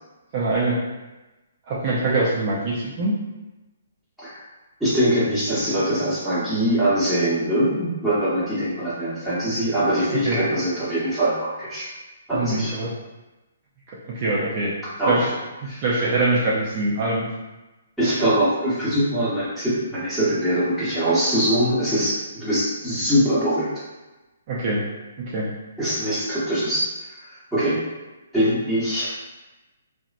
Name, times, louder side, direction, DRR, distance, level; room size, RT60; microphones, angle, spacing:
voice 1, 0.3-0.8 1.7-3.2 10.2-10.4 12.3-12.9 14.1-14.7 15.1-15.3 15.6-17.3 24.5-24.8 25.3-25.5, right 2 dB, 40° right, -7 dB, 0.5 m, -23 dB
voice 2, 4.8-11.9 12.3-12.7 15.0-15.2 15.6-15.8 18.0-23.7 25.8-27.8 28.3-29.1, right 1 dB, ahead, -13 dB, 1.0 m, -23 dB
2.9 x 2.1 x 2.5 m, 1.1 s
hypercardioid pair, 145°, 0 cm